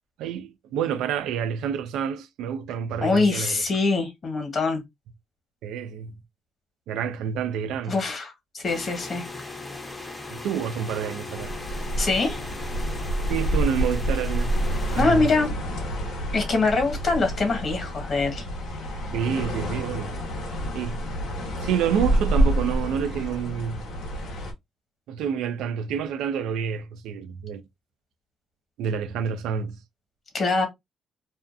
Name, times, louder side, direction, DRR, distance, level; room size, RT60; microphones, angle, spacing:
voice 1, 0.2-3.6 5.6-6.2 6.9-8.0 10.3-11.5 13.3-14.6 14.9-15.3 19.1-20.2 20.7-21.0 21.6-23.9 25.1-27.6 28.8-29.8, right 8 dB, 90° right, 0.3 m, -28 dB
voice 2, 3.0-4.8 7.9-9.2 12.0-12.4 14.9-15.5 16.3-18.4 30.3-30.7, left 3 dB, 45° left, 1.2 m, -23 dB
sound 1, 8.6-15.0, left 3 dB, 20° left, 0.6 m, -38 dB
sound 2, 11.4-24.5, right 1 dB, 85° left, 0.8 m, -28 dB
2.5 x 2.3 x 2.4 m
cardioid pair, 90°, 0 cm